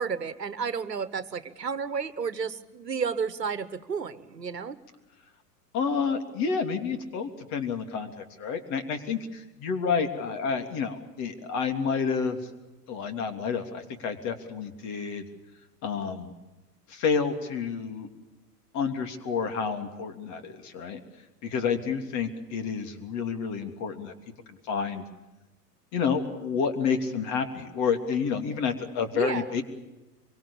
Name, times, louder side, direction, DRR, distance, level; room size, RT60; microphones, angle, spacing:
voice 1, 0.0-4.8 29.1-29.5, right 6 dB, 80° right, 15 dB, 1.4 m, -32 dB
voice 2, 5.7-12.4 12.9-15.2 15.8-16.3 16.9-18.1 18.7-21.0 21.4-24.1 24.5-25.0 25.9-29.6, left 6 dB, 35° left, 7 dB, 3.1 m, -29 dB
25.5 x 23.5 x 7.1 m, 1.1 s
figure-of-eight pair, 95°, 48 cm